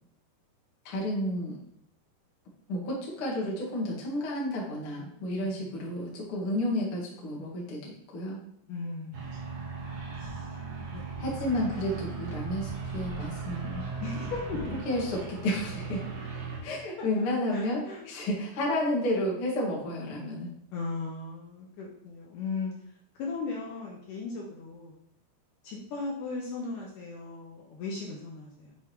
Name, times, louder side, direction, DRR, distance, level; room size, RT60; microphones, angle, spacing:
voice 1, 0.9-1.6 2.7-8.4 11.2-13.9 14.9-16.0 16.6-20.5, left 1 dB, 50° left, -4 dB, 1.7 m, -31 dB
voice 2, 5.5-5.8 8.7-9.6 10.2-10.6 10.9-11.5 14.0-14.8 17.0-17.1 17.5-18.1 20.7-22.8 23.2-25.0 25.6-28.8, left 4 dB, 75° left, -2 dB, 1.9 m, -37 dB
sound 1, 9.1-16.6, right 4 dB, 70° right, 1.8 m, -37 dB
7.4 x 4.6 x 3.1 m, 0.71 s
omnidirectional pair, 4.8 m